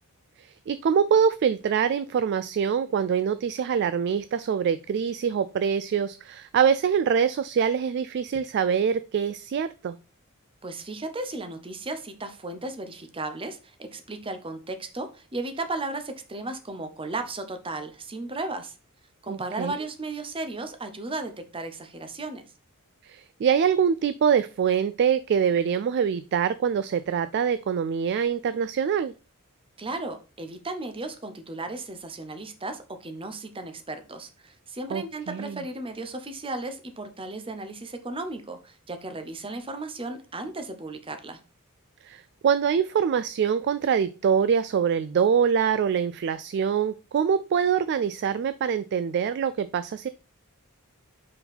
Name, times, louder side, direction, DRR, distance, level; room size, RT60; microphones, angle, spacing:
voice 1, 0.4-10.0 19.3-19.7 23.0-29.1 34.9-35.6 42.0-50.1, right 7 dB, 50° right, 0.3 m, -24 dB
voice 2, 10.6-18.7 19.2-22.4 29.8-41.4, right 2 dB, 25° right, 0.8 m, -35 dB
5.3 x 4.6 x 4.1 m
head